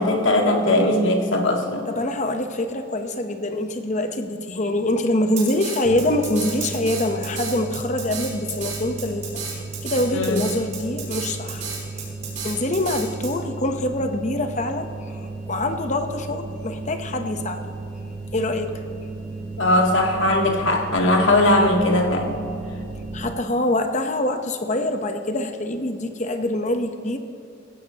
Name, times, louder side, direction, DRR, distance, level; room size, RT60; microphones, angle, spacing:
voice 1, 0.0-1.9 10.1-10.4 19.6-22.4, left 1 dB, 75° left, 1 dB, 1.9 m, -19 dB
voice 2, 1.9-11.6 12.0-12.1 12.4-17.7 18.3-18.8 23.1-27.2, left 1 dB, 40° left, 7 dB, 0.9 m, -25 dB
Drum kit, 5.4-13.3, right 5 dB, 40° right, 3.7 m, -32 dB
sound 1, 5.8-23.3, right 3 dB, 10° left, 2.5 m, -35 dB
17.0 x 15.5 x 2.9 m, 2.6 s
head